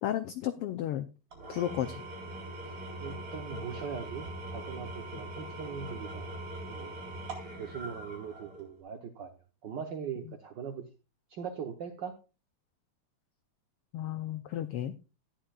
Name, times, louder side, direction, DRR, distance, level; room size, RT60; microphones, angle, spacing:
voice 1, 0.0-1.1 1.5-2.0 13.9-14.9, left 12 dB, 85° left, 10 dB, 1.3 m, -33 dB
Engine / Tools, 1.3-8.8, right 1 dB, 50° right, 4.7 m, -42 dB
voice 2, 2.6-6.3 6.7-7.0 7.6-9.3 9.6-10.9 11.3-12.2, right 7 dB, 70° right, 5 dB, 1.1 m, -40 dB
13.5 x 10.5 x 2.4 m, 0.30 s
omnidirectional pair, 3.3 m